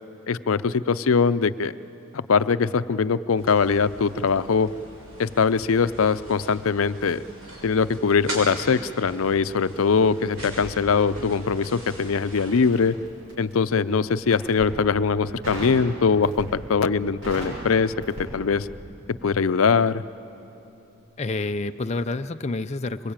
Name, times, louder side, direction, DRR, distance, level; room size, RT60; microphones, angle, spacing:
voice 1, 0.3-1.7 2.1-4.7 5.2-7.2 7.6-13.0 13.4-17.9 18.3-18.7 19.2-20.0, left 5 dB, 80° left, 14 dB, 0.6 m, -22 dB
sound 1, 3.4-12.9, equal, 85° right, 6.4 m, -40 dB
Crackle, 12.5-13.6 14.2-14.8 15.4-15.8 16.2-16.7 17.0-18.9 19.2-19.4, equal, 65° right, 7.2 m, -36 dB
voice 2, 21.2-23.1, left 2 dB, 30° left, 8 dB, 0.5 m, -28 dB
24.0 x 23.0 x 8.9 m, 3.0 s
head